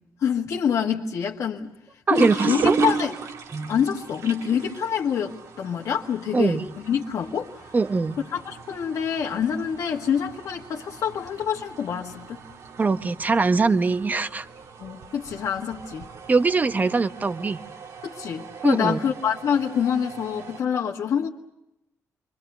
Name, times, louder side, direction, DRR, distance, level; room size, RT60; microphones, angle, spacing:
voice 1, 0.2-1.7 2.1-3.1 3.7-7.5 8.3-12.4 14.8-16.1 18.0-21.3, left 8 dB, 75° left, -1 dB, 1.5 m, -26 dB
voice 2, 2.1-2.8 3.5-3.7 6.3-6.6 7.7-8.2 12.8-14.5 16.3-17.6 18.6-19.0, right 4 dB, 30° right, 10 dB, 1.0 m, -22 dB
sound 1, 2.1-20.6, right 4 dB, 80° right, 2.0 m, -35 dB
29.0 x 23.5 x 6.8 m, 0.89 s
cardioid pair, 95°, 6 cm